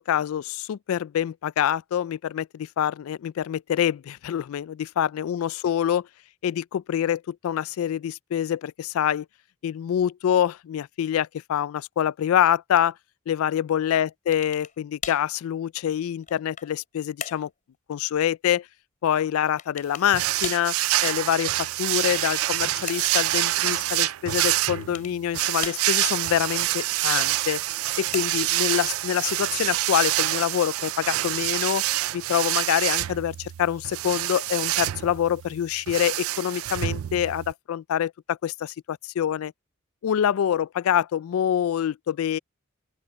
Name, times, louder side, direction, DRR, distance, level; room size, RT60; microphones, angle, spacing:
voice 1, 0.0-6.1 6.4-9.3 9.6-12.9 13.3-17.5 17.9-18.7 19.0-20.8 21.0-27.6 28.0-31.8 32.1-39.5 40.0-42.4, left 9 dB, 80° left, 0.3 m, -26 dB
sound 1, 14.3-14.8 15.0-15.3 15.9-16.8 17.2-17.5 19.6-20.1 20.4-20.7 22.1-23.2 24.6-25.2 25.6-26.2 27.6-28.6, left 7 dB, 40° left, 3.7 m, -38 dB
sound 2, 20.1-37.5, right 16 dB, 85° right, 0.3 m, -27 dB
open air
head